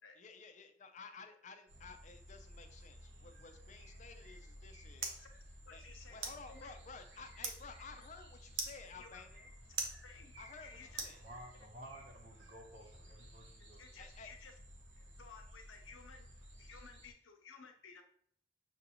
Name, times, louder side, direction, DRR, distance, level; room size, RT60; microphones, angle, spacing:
voice 1, 0.2-5.2 5.7-5.8 6.1-9.5 10.4-11.2 14.0-14.3, left 4 dB, 40° left, 7 dB, 0.4 m, -54 dB
sound 1, 1.7-17.1, equal, 65° right, 1.1 m, -56 dB
sound 2, 4.2-11.8, right 4 dB, 80° right, 0.8 m, -47 dB
voice 2, 5.7-6.7 8.9-9.2 10.0-10.3 10.6-11.0 13.7-14.5 15.0-16.3 16.6-18.0, left 5 dB, 85° left, 4 dB, 0.7 m, -56 dB
voice 3, 10.8-13.8, right 1 dB, 45° right, 2 dB, 0.9 m, -54 dB
6.3 x 2.6 x 2.8 m, 0.63 s
head